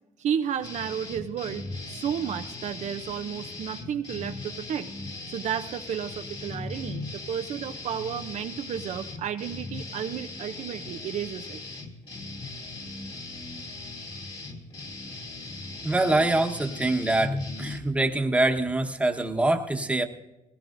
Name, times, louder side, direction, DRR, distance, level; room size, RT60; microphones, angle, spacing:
voice 1, 0.2-4.9 5.3-11.6, right 8 dB, 60° right, 7 dB, 0.6 m, -32 dB
sound 1, 0.6-17.8, left 2 dB, 35° left, 2.6 m, -38 dB
voice 2, 15.8-20.0, right 2 dB, 10° right, 4 dB, 1.2 m, -24 dB
20.0 x 17.0 x 2.6 m, 1.0 s
cardioid pair, 100°, 14 cm